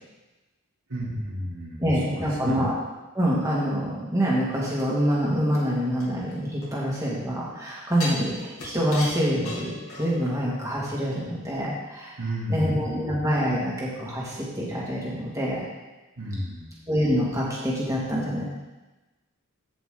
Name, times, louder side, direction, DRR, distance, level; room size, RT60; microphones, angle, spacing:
voice 1, 0.9-2.7 12.2-13.0 16.2-16.8, equal, 90° right, -5 dB, 2.8 m, -32 dB
voice 2, 1.8-2.7 3.1-12.1 12.5-15.6 16.9-18.4, equal, 15° right, -6 dB, 1.9 m, -26 dB
sound 1, 6.0-7.1 8.0-10.3 10.7-10.8, left 2 dB, 75° left, 2.7 m, -37 dB
14.5 x 5.3 x 3.8 m, 1.1 s
head